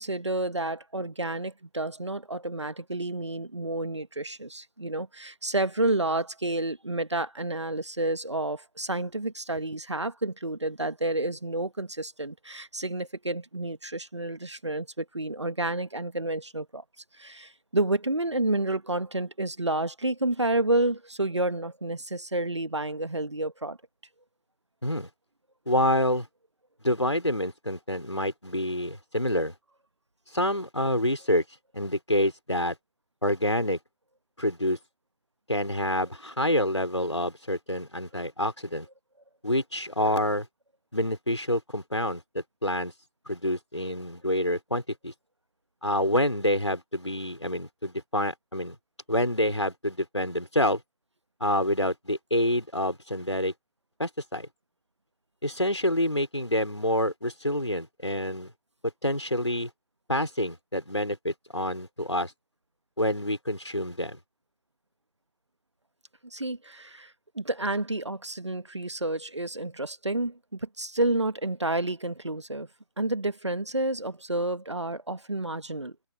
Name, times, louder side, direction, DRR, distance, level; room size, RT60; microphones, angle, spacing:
voice 1, 0.0-16.8 17.2-23.8 66.2-72.7 73.0-75.9, right 2 dB, 80° right, 1.6 m, -30 dB
voice 2, 25.7-26.3 26.8-29.5 30.3-31.4 31.7-32.8 33.2-33.8 34.4-34.8 35.5-38.9 39.4-40.5 40.9-42.9 43.3-45.1 45.8-48.8 49.1-50.8 51.4-53.5 54.0-54.5 55.4-58.5 59.0-59.7 60.1-62.3 63.0-64.2, left 1 dB, 90° left, 5.1 m, -27 dB
open air
figure-of-eight pair, 145°, 15 cm